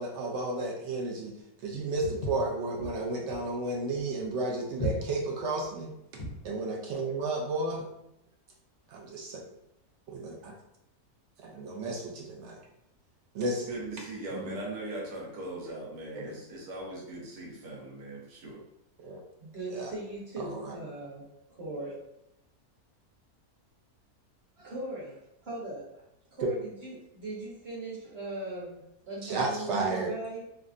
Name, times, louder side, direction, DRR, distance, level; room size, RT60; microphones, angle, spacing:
voice 1, 0.0-1.4 1.6-5.9 6.4-7.9 8.9-9.4 10.1-10.5 11.4-12.6 13.3-13.7 14.3-14.6 16.1-16.3 19.0-19.2 19.7-19.9 20.4-20.7 29.2-30.1, right 2 dB, 65° right, 0 dB, 0.7 m, -33 dB
Walk footsteps, 2.0-6.5, equal, 75° left, 1.2 m, -37 dB
voice 2, 13.7-18.6, right 2 dB, 85° right, -2 dB, 1.3 m, -40 dB
voice 3, 19.4-21.2 21.6-22.0 24.6-25.9 26.4-30.4, right 2 dB, 45° right, -7 dB, 1.2 m, -39 dB
3.4 x 2.1 x 2.5 m, 0.82 s
omnidirectional pair, 1.6 m